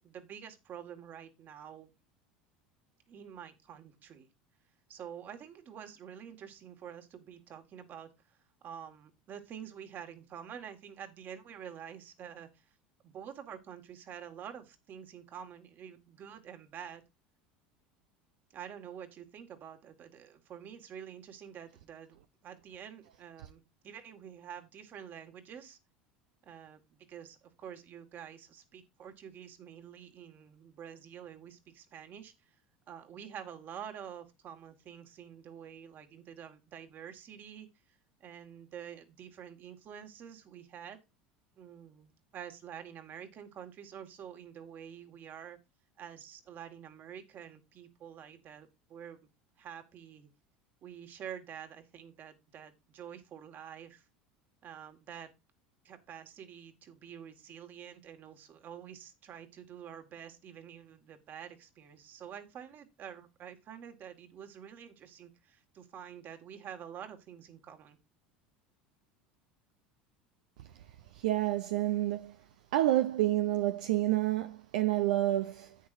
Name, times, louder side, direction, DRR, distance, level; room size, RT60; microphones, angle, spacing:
voice 1, 0.0-1.9 3.1-4.3 4.9-8.4 8.6-12.7 13.0-17.0 18.5-25.8 26.4-32.3 32.9-37.7 38.2-41.0 41.6-45.6 46.0-49.2 49.6-50.3 50.8-54.1 54.6-55.3 55.8-68.0, right 8 dB, 45° right, 1.9 m, -48 dB
voice 2, 71.1-72.4 72.7-75.8, right 14 dB, 70° right, 0.6 m, -29 dB
10.5 x 8.6 x 2.7 m
hypercardioid pair, 75°, 5 cm